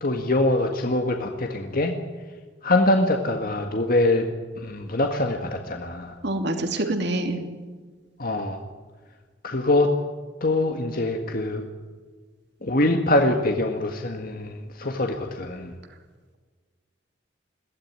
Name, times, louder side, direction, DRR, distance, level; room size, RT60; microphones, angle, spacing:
voice 1, 0.0-1.9 2.6-6.2 8.2-8.6 9.4-9.9 10.4-11.6 12.6-15.7, left 2 dB, 45° left, 4 dB, 1.8 m, -24 dB
voice 2, 6.2-7.4, right 1 dB, 60° right, 6 dB, 2.9 m, -26 dB
22.5 x 17.0 x 9.8 m, 1.4 s
head